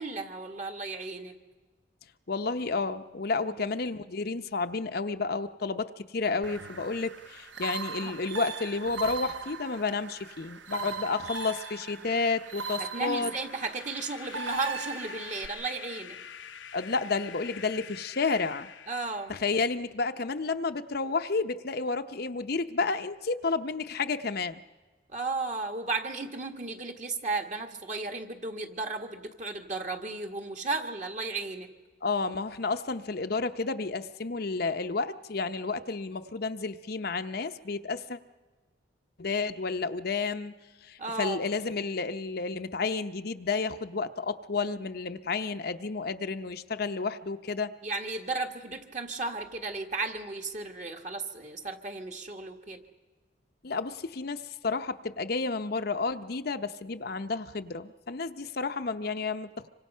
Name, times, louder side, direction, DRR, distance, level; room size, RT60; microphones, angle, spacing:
voice 1, 0.0-1.4 3.5-3.7 8.0-8.1 12.8-16.2 18.9-19.3 25.1-31.7 41.0-41.4 47.8-52.8, right 3 dB, 40° right, 4 dB, 1.8 m, -34 dB
voice 2, 2.3-13.3 16.7-18.7 19.3-24.6 32.0-38.2 39.2-40.5 40.8-47.7 53.6-59.7, left 4 dB, 55° left, 8 dB, 0.8 m, -31 dB
sound 1, 6.4-15.5, right 4 dB, 75° right, 1.2 m, -39 dB
sound 2, 12.7-19.7, left 8 dB, 85° left, 0.8 m, -47 dB
26.0 x 25.0 x 5.6 m, 1.3 s
head